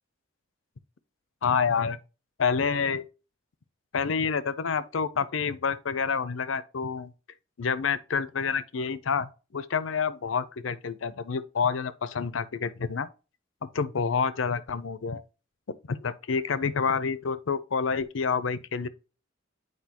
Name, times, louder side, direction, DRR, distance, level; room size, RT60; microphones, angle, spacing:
voice 1, 1.4-2.0 2.4-3.0 3.9-7.1 7.6-13.1 13.6-15.2 15.9-18.9, left 5 dB, 80° left, 0.6 m, -28 dB
8.3 x 4.7 x 2.9 m
head